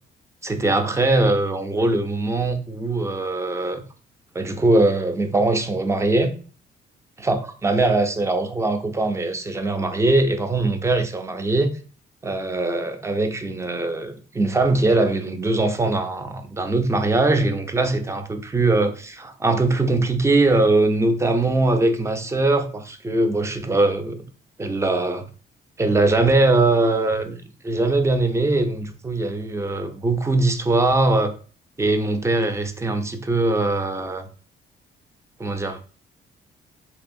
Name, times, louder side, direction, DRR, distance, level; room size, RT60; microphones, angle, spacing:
voice 1, 0.4-3.8 4.3-6.3 7.2-11.7 12.2-24.2 24.6-25.3 25.8-27.4 27.6-31.3 31.8-34.3 35.4-35.8, right 2 dB, 15° right, 0.4 m, -21 dB
2.9 x 2.5 x 2.5 m
cardioid pair, 90°, 20 cm